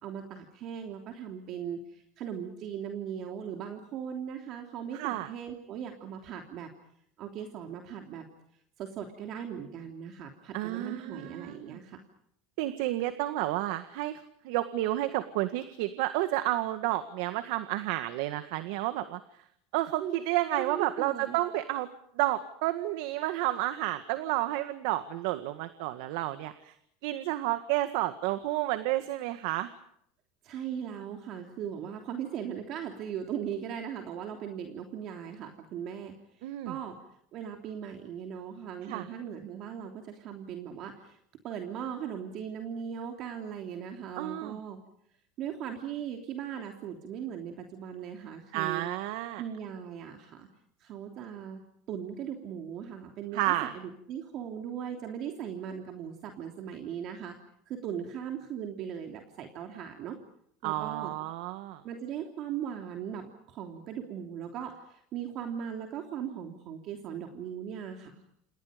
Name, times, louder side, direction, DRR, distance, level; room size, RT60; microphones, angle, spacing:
voice 1, 0.0-6.7 7.2-8.2 8.8-12.0 20.0-20.1 20.6-21.4 30.4-37.0 37.3-41.2 41.4-44.8 45.4-48.8 49.4-50.5 50.8-51.6 51.9-57.4 57.7-60.2 60.6-61.1 61.8-68.2, right 8 dB, 40° right, 3 dB, 3.1 m, -39 dB
voice 2, 4.9-5.3 10.5-11.8 12.6-19.2 19.7-21.9 22.2-26.7 27.0-29.7 36.4-36.7 38.9-39.1 44.2-44.6 48.5-49.4 53.3-53.7 60.6-61.8, right 15 dB, 65° right, 10 dB, 1.8 m, -31 dB
29.0 x 28.5 x 5.2 m, 0.70 s
supercardioid pair, 155°, 0 cm